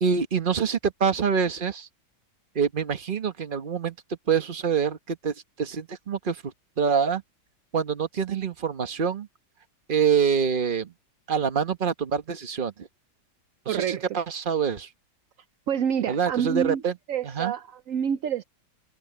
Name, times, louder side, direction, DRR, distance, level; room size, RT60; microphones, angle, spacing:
voice 1, 0.0-1.9 2.5-3.9 4.3-6.4 6.8-7.2 7.7-9.3 9.9-10.9 11.3-12.9 13.6-14.9 16.1-16.9 17.2-17.5, right 6 dB, 30° right, 1.0 m, -25 dB
voice 2, 13.7-14.0 15.7-16.8 17.1-18.4, right 8 dB, 75° right, 0.7 m, -27 dB
omnidirectional pair, 2.2 m